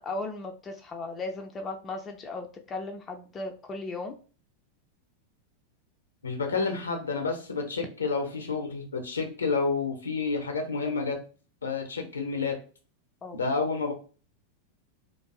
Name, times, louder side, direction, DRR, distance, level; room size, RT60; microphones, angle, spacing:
voice 1, 0.0-4.1 13.2-13.4, left 3 dB, 20° left, 4 dB, 0.3 m, -36 dB
voice 2, 6.2-11.2 11.6-12.6 13.3-13.9, left 4 dB, 75° left, 3 dB, 0.6 m, -29 dB
2.5 x 2.4 x 2.2 m, 0.37 s
figure-of-eight pair, 90°, 0 cm